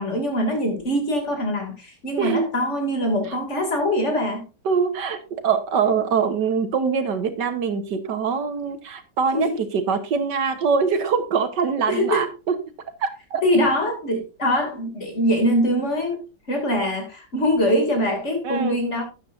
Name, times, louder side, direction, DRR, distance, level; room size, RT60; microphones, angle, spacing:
voice 1, 0.0-4.4 9.3-9.6 11.9-12.2 13.4-16.2 16.5-19.0, equal, 40° left, 3.0 m, -23 dB
voice 2, 2.2-2.5 3.3-3.4 4.7-12.6 13.0-13.4 18.4-18.8, right 6 dB, 80° right, 1.8 m, -23 dB
12.0 x 9.8 x 2.6 m
omnidirectional pair, 1.9 m